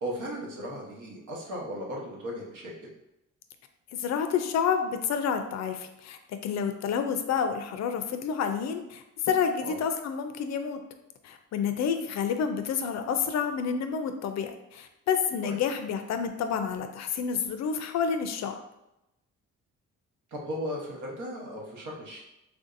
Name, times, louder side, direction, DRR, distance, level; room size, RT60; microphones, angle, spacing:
voice 1, 0.0-2.9 9.6-9.8 15.4-15.6 20.3-22.2, equal, 75° right, -2 dB, 1.1 m, -36 dB
voice 2, 4.0-10.8 11.2-18.6, left 7 dB, 60° left, 7 dB, 0.4 m, -29 dB
3.4 x 2.6 x 2.5 m, 0.88 s
cardioid pair, 90°, 30 cm